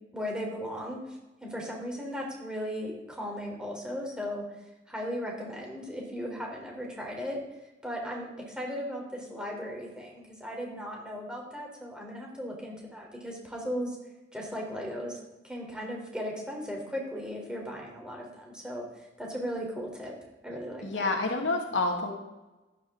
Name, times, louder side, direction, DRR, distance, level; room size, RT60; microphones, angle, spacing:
voice 1, 0.1-1.0 1.4-4.4 4.9-7.4 7.8-14.0 14.3-15.2 15.4-18.9 19.2-20.1 20.4-21.1, equal, 5° right, -1 dB, 3.6 m, -36 dB
voice 2, 20.8-22.1, left 3 dB, 85° left, 2 dB, 2.1 m, -28 dB
14.5 x 11.5 x 3.8 m, 1.0 s
head